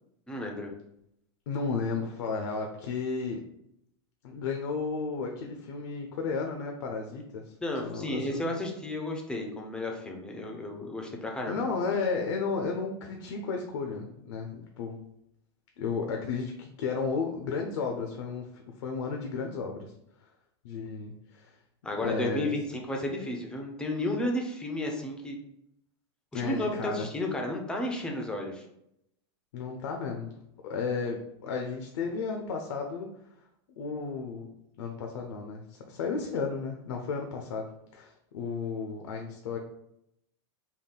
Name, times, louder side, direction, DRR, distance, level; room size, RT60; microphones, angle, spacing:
voice 1, 0.3-0.7 7.6-11.6 21.8-25.4 26.3-28.6, left 1 dB, 5° left, 1 dB, 0.3 m, -32 dB
voice 2, 1.5-3.4 4.2-7.5 7.8-8.4 11.4-15.0 15.8-19.9 20.2-20.3 20.6-21.6 22.0-22.5 26.3-27.1 29.5-30.4 30.6-33.1 33.8-34.5 34.8-39.6, left 4 dB, 85° left, 2 dB, 0.5 m, -33 dB
3.5 x 2.3 x 3.7 m, 0.78 s
supercardioid pair, 165°, 15 cm